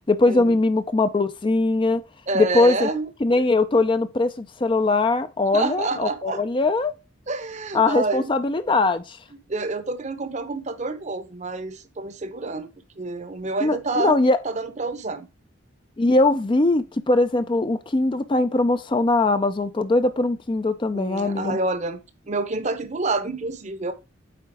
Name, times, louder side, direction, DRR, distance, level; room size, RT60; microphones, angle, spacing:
voice 1, 0.1-2.0 2.3-2.9 3.2-6.9 7.7-9.2 13.6-14.4 16.0-21.6, left 2 dB, 25° left, 0.4 m, -21 dB
voice 2, 2.3-3.1 3.4-3.5 5.5-6.4 7.3-8.3 9.5-12.7 13.0-15.3 20.9-22.0 22.3-23.9, right 3 dB, 40° right, 0.8 m, -28 dB
8.6 x 4.0 x 3.5 m
head